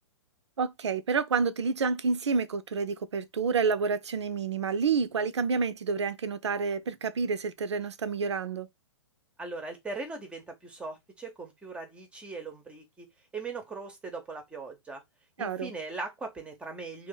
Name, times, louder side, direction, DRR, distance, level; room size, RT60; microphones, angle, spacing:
voice 1, 0.6-8.7 15.4-15.7, right 5 dB, 70° right, 0.5 m, -29 dB
voice 2, 9.4-13.1 13.3-15.0 15.4-17.1, right 3 dB, 5° right, 0.7 m, -39 dB
2.7 x 2.4 x 3.8 m
figure-of-eight pair, 115°, 15 cm